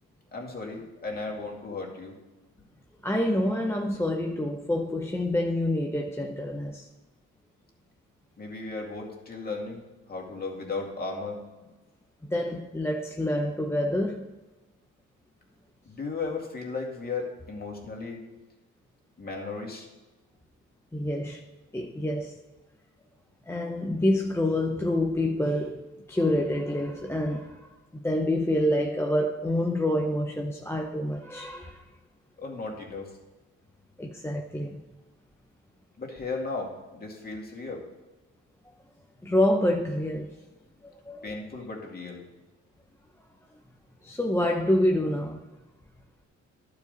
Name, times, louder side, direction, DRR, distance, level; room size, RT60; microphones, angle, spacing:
voice 1, 0.3-2.2 8.4-9.8 10.1-11.7 15.9-18.2 19.2-19.9 32.4-33.1 36.0-37.8 41.2-42.2, left 3 dB, 30° left, 2.4 m, -35 dB
voice 2, 3.0-6.9 12.2-14.3 20.9-21.5 21.7-22.4 23.5-31.8 34.0-34.8 39.2-40.3 41.0-41.2 44.0-45.4, left 1 dB, 10° left, 0.7 m, -27 dB
11.5 x 4.9 x 5.3 m
cardioid pair, 90°, 30 cm